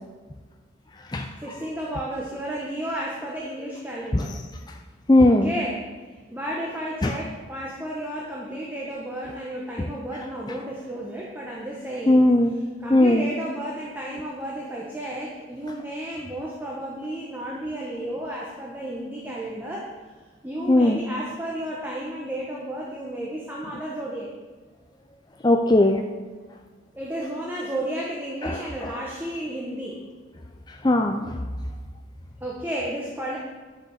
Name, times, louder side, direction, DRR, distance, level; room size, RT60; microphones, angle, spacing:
voice 1, 1.4-4.4 5.3-5.8 6.3-12.3 12.8-19.9 20.4-24.3 26.9-30.1 32.4-33.4, right 1 dB, 10° right, -4 dB, 1.2 m, -32 dB
voice 2, 5.1-5.5 7.0-7.2 12.1-12.5 12.9-13.3 20.7-21.0 25.4-26.0 28.4-29.0 30.8-31.3, left 1 dB, 20° left, 4 dB, 0.4 m, -18 dB
11.0 x 6.4 x 6.5 m, 1.4 s
head